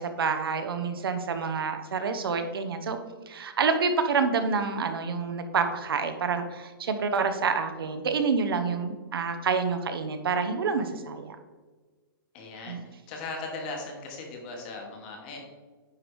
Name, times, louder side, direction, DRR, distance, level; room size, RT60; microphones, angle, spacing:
voice 1, 0.0-3.0 3.3-11.4 12.7-12.8, right 5 dB, 80° right, 8 dB, 0.9 m, -28 dB
voice 2, 12.3-12.8 13.1-15.4, left 3 dB, 25° left, 1 dB, 1.2 m, -38 dB
9.6 x 3.4 x 4.6 m, 1.3 s
hypercardioid pair, 175°, 12 cm